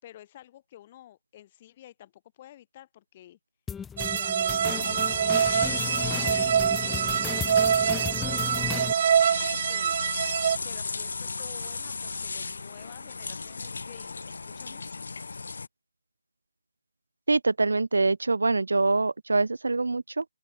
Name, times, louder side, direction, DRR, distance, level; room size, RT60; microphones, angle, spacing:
voice 1, 0.0-3.4 4.0-10.3 10.6-15.0, left 13 dB, 25° left, 5.1 m, -50 dB
sound 1, 3.7-8.9, left 7 dB, 5° left, 1.2 m, -35 dB
sound 2, 4.0-10.6, right 8 dB, 40° right, 0.5 m, -25 dB
sound 3, 4.6-15.7, left 4 dB, 60° left, 2.5 m, -36 dB
voice 2, 17.3-20.2, right 3 dB, 75° right, 1.4 m, -24 dB
figure-of-eight pair, 155°, 0 cm